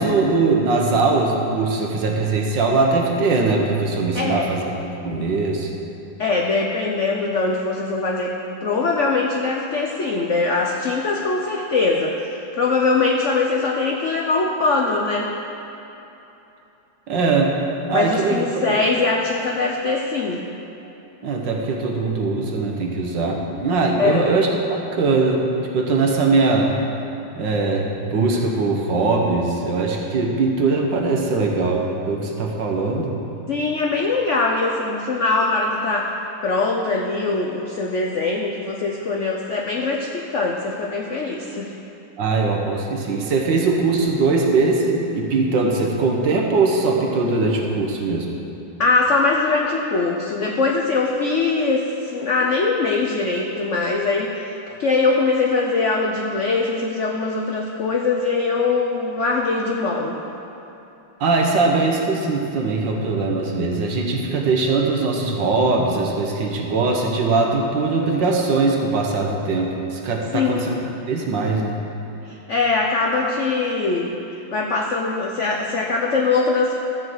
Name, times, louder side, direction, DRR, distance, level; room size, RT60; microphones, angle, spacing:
voice 1, 0.0-5.7 17.1-17.5 17.9-18.4 18.7-18.8 21.2-26.7 27.4-33.2 42.2-48.3 61.2-70.8 71.1-71.8, right 3 dB, 60° right, 0 dB, 1.7 m, -21 dB
voice 2, 4.1-4.5 6.2-15.3 17.9-20.5 24.0-24.4 33.5-36.1 36.4-41.8 48.8-60.2 70.3-70.6 72.2-76.8, left 3 dB, 80° left, 0 dB, 0.6 m, -22 dB
14.0 x 4.7 x 7.8 m, 3.0 s
omnidirectional pair, 2.3 m